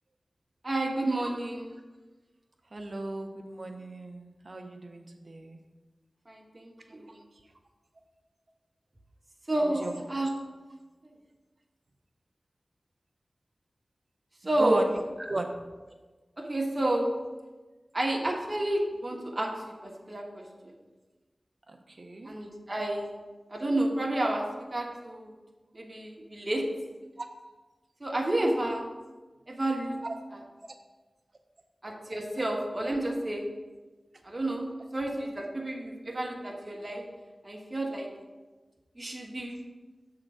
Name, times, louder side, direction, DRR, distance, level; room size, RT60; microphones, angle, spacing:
voice 1, 0.6-1.8 6.3-7.1 9.5-10.3 11.0-11.1 14.4-14.8 16.4-17.1 17.9-20.7 22.2-23.2 23.5-24.4 24.7-25.3 25.7-26.7 28.0-28.8 29.5-30.0 30.3-30.4 31.8-33.5 34.2-37.0 37.4-38.1 39.0-39.6, right 1 dB, 30° right, 0 dB, 1.3 m, -30 dB
voice 2, 2.7-5.6 9.6-10.0 14.6-14.9 15.3-15.5 21.7-22.3 27.2-27.3 30.0-30.2, right 2 dB, 50° right, 4 dB, 0.7 m, -35 dB
7.5 x 3.8 x 6.1 m, 1.3 s
wide cardioid pair, 85°, 0 cm